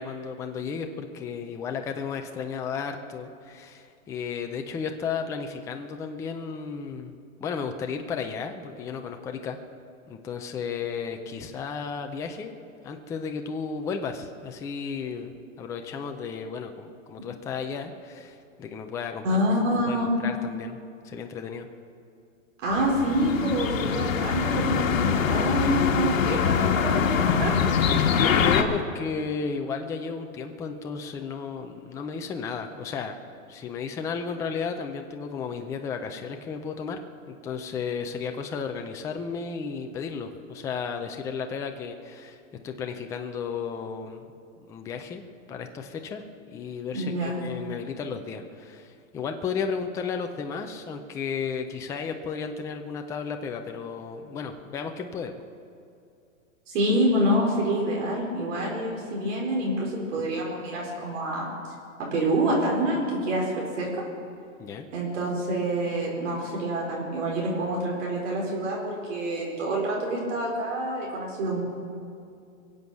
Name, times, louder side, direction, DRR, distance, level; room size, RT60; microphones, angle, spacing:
voice 1, 0.0-7.1 7.4-9.6 10.1-12.5 12.8-19.4 19.9-20.8 21.0-21.7 28.1-33.1 33.5-42.4 42.6-44.3 44.7-55.3 64.6-64.9, left 5 dB, 10° left, 5 dB, 0.4 m, -34 dB
voice 2, 19.2-20.2 22.6-27.5 46.9-47.4 56.7-61.5 62.0-63.9 64.9-71.6, right 1 dB, 65° right, -3 dB, 4.7 m, -27 dB
sound 1, 22.7-28.6, left 7 dB, 75° left, 1.6 m, -24 dB
23.5 x 7.9 x 7.1 m, 2.5 s
hypercardioid pair, 140°, 40 cm